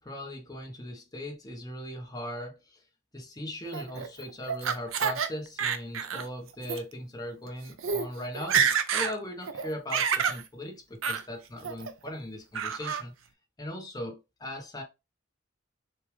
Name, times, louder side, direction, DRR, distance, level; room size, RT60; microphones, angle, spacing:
voice 1, 0.0-2.8 3.1-13.1 13.6-14.8, left 1 dB, 20° left, 1.1 m, -39 dB
Laughter, 3.7-5.3 5.6-6.3 6.6-6.8 7.5-7.6 7.8-8.1 8.3-9.1 9.5-10.4 11.0-11.2 11.6-12.1 12.5-13.0, right 7 dB, 85° right, 0.6 m, -28 dB
6.5 x 2.5 x 3.2 m
head